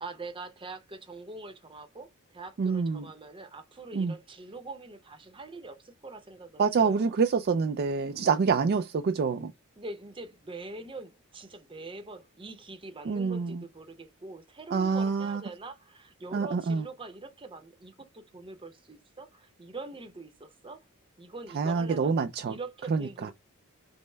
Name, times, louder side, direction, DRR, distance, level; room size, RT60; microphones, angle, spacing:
voice 1, 0.0-7.1 9.3-9.5 9.8-20.8 21.2-22.2 22.4-23.3, right 3 dB, 25° right, 0.7 m, -44 dB
voice 2, 2.6-3.1 3.9-4.1 6.6-9.5 13.1-13.6 14.7-15.4 16.3-16.8 21.5-22.6 22.9-23.3, right 5 dB, 45° right, 0.3 m, -27 dB
5.3 x 2.1 x 3.2 m
head